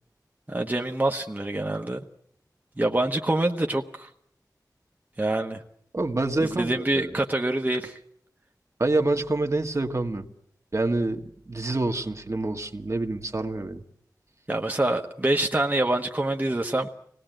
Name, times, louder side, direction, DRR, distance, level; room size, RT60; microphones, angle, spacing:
voice 1, 0.5-2.0 2.8-4.1 5.2-5.6 6.4-8.0 14.5-16.9, right 1 dB, 25° right, 2 dB, 1.2 m, -26 dB
voice 2, 5.9-7.2 8.8-10.3 10.7-13.8, right 2 dB, 45° right, 4 dB, 1.6 m, -27 dB
25.0 x 18.5 x 9.0 m, 0.71 s
wide cardioid pair, 70°, 7 cm